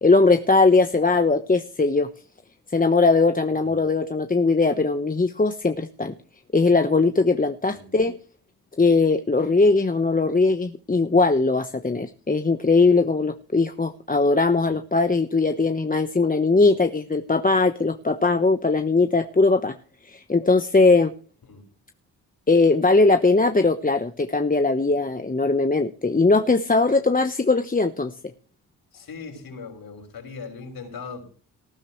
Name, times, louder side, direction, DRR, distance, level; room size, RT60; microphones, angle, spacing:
voice 1, 0.0-2.1 2.7-6.1 6.5-8.2 8.8-19.7 20.1-21.1 22.5-28.1, left 3 dB, 20° left, 7 dB, 1.2 m, -20 dB
voice 2, 28.9-31.2, left 5 dB, 65° left, 5 dB, 6.3 m, -39 dB
19.0 x 11.5 x 3.2 m, 0.41 s
supercardioid pair, 55°, 40 cm